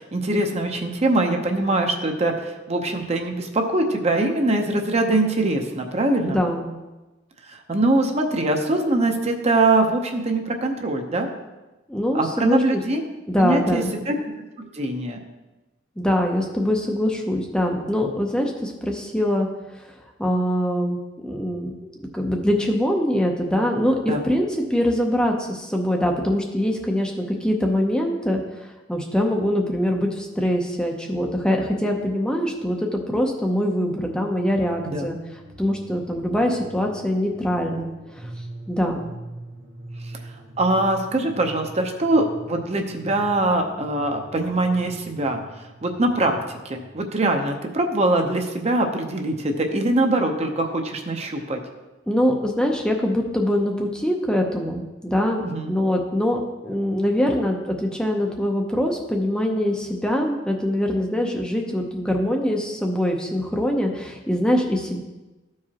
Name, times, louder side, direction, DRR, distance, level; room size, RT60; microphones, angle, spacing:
voice 1, 0.0-6.4 7.5-11.3 12.1-13.0 13.4-14.2 14.7-15.2 24.1-24.2 34.9-35.1 40.6-45.4 45.8-46.4 46.6-51.6 55.5-55.7, right 2 dB, 35° right, 3 dB, 0.7 m, -22 dB
voice 2, 6.3-6.7 11.9-12.8 13.3-14.0 16.0-19.5 19.7-21.0 21.2-21.7 22.0-37.9 38.1-38.3 38.7-39.0 52.1-55.4 55.7-65.0, equal, 5° left, 1 dB, 0.6 m, -23 dB
sound 1, 34.0-46.8, right 1 dB, 85° right, 1.4 m, -43 dB
14.0 x 4.8 x 2.9 m, 1.1 s
head